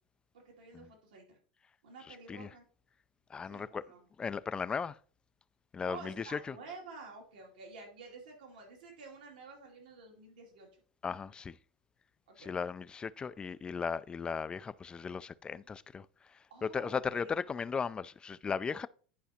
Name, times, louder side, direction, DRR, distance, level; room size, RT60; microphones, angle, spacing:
voice 1, 0.3-1.4 1.8-2.6 3.4-4.0 5.9-10.7 12.3-12.5 16.5-17.3, right 4 dB, 85° right, 2.5 m, -50 dB
voice 2, 2.1-2.5 3.3-3.8 4.2-5.0 5.7-6.6 11.0-11.6 12.4-18.9, left 5 dB, 20° left, 0.3 m, -37 dB
10.5 x 4.9 x 2.8 m
hypercardioid pair, 100°, 4 cm